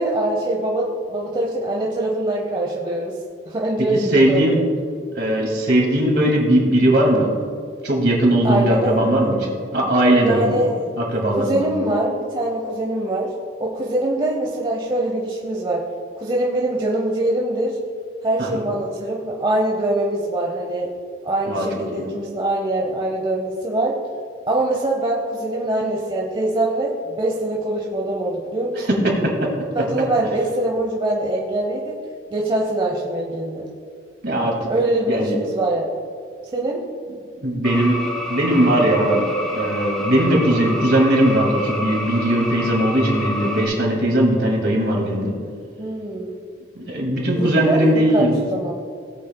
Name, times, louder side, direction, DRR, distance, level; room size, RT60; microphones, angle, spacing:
voice 1, 0.0-4.7 8.4-9.3 10.2-10.8 11.3-13.3 13.6-17.8 18.2-20.9 21.2-24.0 24.5-28.9 29.7-32.0 32.3-33.7 34.7-35.9 36.5-36.8 45.8-46.4 47.3-48.8, right 1 dB, 25° right, -1 dB, 0.8 m, -23 dB
voice 2, 4.1-4.6 5.2-7.3 7.8-10.6 11.0-11.7 18.4-18.5 21.5-22.0 28.8-29.0 29.2-29.5 34.2-34.7 35.1-35.4 37.4-38.0 38.3-39.2 39.5-45.3 46.8-48.4, right 1 dB, 60° right, 0 dB, 2.3 m, -19 dB
sound 1, 37.6-43.7, equal, 5° left, 1.1 m, -28 dB
18.0 x 8.3 x 2.2 m, 2.3 s
head